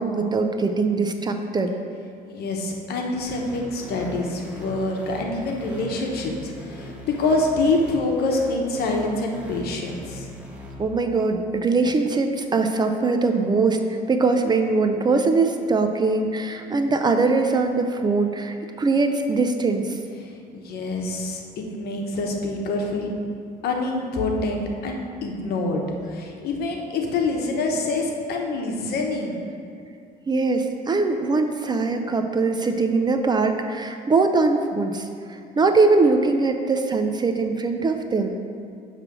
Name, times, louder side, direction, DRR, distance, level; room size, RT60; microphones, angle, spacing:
voice 1, 0.0-1.7 10.8-20.0 30.3-38.4, right 3 dB, 25° right, 6 dB, 0.4 m, -22 dB
voice 2, 2.3-10.3 20.2-21.4 21.7-23.1 23.6-25.0 25.2-29.4, left 2 dB, 70° left, 1 dB, 1.0 m, -26 dB
sound 1, 3.2-10.8, left 1 dB, 10° right, 1.0 m, -41 dB
7.3 x 3.3 x 6.0 m, 2.4 s
cardioid pair, 110°, 17 cm